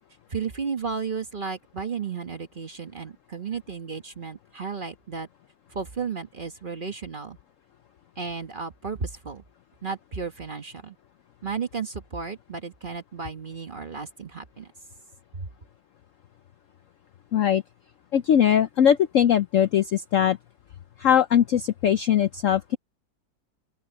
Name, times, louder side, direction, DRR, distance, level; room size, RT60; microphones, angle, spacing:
voice 1, 0.3-5.3 5.7-7.4 8.2-9.4 9.8-11.0 11.4-14.7, right 5 dB, 35° right, 1.1 m, -33 dB
voice 2, 17.3-17.6 18.1-20.4 21.0-22.8, left 9 dB, 70° left, 0.8 m, -20 dB
open air
omnidirectional pair, 1.9 m